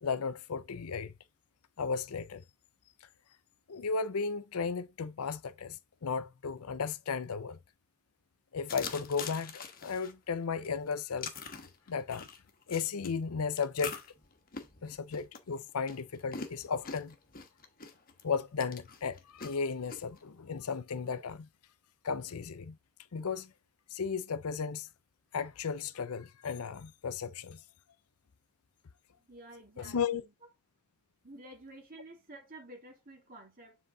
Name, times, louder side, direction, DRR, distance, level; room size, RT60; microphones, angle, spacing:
voice 1, 0.0-1.1 1.8-2.4 3.7-7.6 8.5-11.3 11.9-12.3 12.7-14.0 14.8-17.2 18.2-21.5 22.0-22.8 23.1-23.5 23.9-24.9 25.3-27.6 29.8-30.2, left 5 dB, 75° left, 0.6 m, -35 dB
sound 1, 8.7-10.1 10.6-13.1 13.6-18.2 18.6-20.2, left 5 dB, 40° left, 1.2 m, -43 dB
voice 2, 29.2-30.3 31.2-33.8, right 1 dB, 40° right, 2.8 m, -51 dB
7.4 x 4.0 x 3.8 m
head